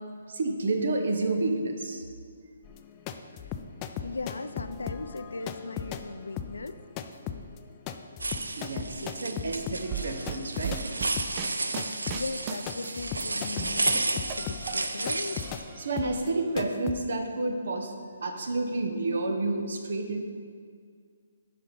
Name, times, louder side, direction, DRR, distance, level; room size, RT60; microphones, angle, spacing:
voice 1, 0.3-2.0 8.6-10.8 15.8-17.9 18.2-20.2, right 2 dB, 65° right, 5 dB, 1.0 m, -30 dB
sound 1, 2.6-10.9 11.2-17.0, left 8 dB, 25° left, 0.4 m, -38 dB
voice 2, 4.0-6.7 12.1-15.5, left 3 dB, 85° left, 11 dB, 0.4 m, -38 dB
sound 2, 8.2-15.6, right 2 dB, 90° right, 0.5 m, -32 dB
sound 3, 9.9-13.2 13.6-15.1 15.4-16.3, right 8 dB, 30° right, 0.5 m, -38 dB
6.8 x 5.2 x 5.4 m, 2.1 s
hypercardioid pair, 145°, 0 cm